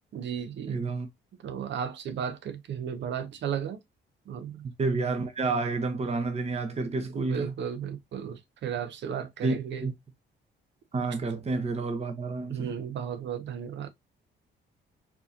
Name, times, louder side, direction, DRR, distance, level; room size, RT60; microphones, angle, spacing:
voice 1, 0.1-0.8 1.4-3.8 4.3-4.6 7.1-9.9 12.5-13.9, right 8 dB, 65° right, 0.9 m, -34 dB
voice 2, 0.7-1.1 4.8-7.5 9.4-9.5 9.8-9.9 10.9-12.7, right 3 dB, 30° right, 1.0 m, -29 dB
4.6 x 2.9 x 2.5 m
cardioid pair, 90°, 20 cm